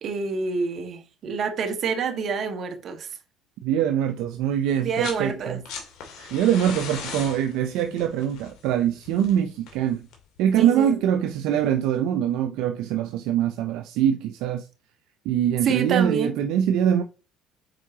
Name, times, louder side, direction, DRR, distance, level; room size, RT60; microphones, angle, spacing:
voice 1, 0.0-3.1 4.8-5.6 6.2-6.3 10.6-11.0 15.6-16.4, right 5 dB, 50° right, 1.5 m, -27 dB
voice 2, 3.6-5.6 6.3-10.1 10.4-14.7 15.3-17.0, right 10 dB, 75° right, 0.5 m, -23 dB
sound 1, 4.8-5.2 5.5-10.4 11.6-11.7, left 5 dB, 70° left, 2.4 m, -38 dB
7.5 x 4.7 x 2.8 m
supercardioid pair, 85°, 0 cm